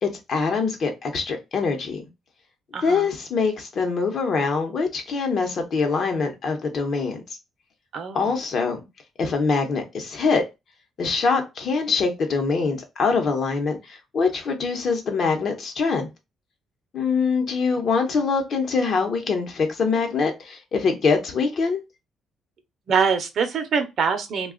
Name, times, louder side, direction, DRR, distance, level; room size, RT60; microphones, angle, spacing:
voice 1, 0.0-2.0 2.8-7.2 8.1-8.8 9.2-10.4 11.0-13.8 14.1-16.1 16.9-21.8, left 4 dB, 50° left, 0.9 m, -23 dB
voice 2, 2.7-3.1 7.9-8.3 22.9-24.5, right 6 dB, 55° right, 0.7 m, -24 dB
2.5 x 2.3 x 3.6 m
cardioid pair, 120°, 0 cm